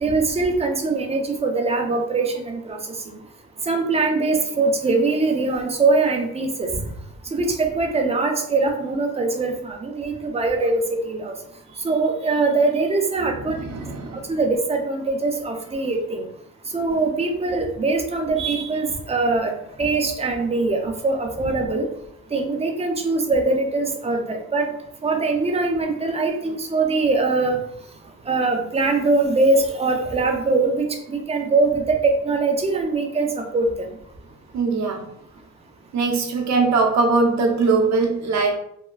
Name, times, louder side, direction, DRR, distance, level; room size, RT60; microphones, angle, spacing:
voice 1, 0.0-2.8 3.7-6.7 7.3-11.3 11.8-13.6 14.3-16.2 16.7-19.5 19.8-21.9 22.3-24.7 25.0-27.6 28.3-33.7, right 3 dB, 20° right, 3 dB, 0.5 m, -22 dB
voice 2, 13.4-14.4 34.5-35.1 35.9-38.6, right 4 dB, 65° right, 2 dB, 0.7 m, -21 dB
3.2 x 2.2 x 2.3 m, 0.72 s
cardioid pair, 90°, 30 cm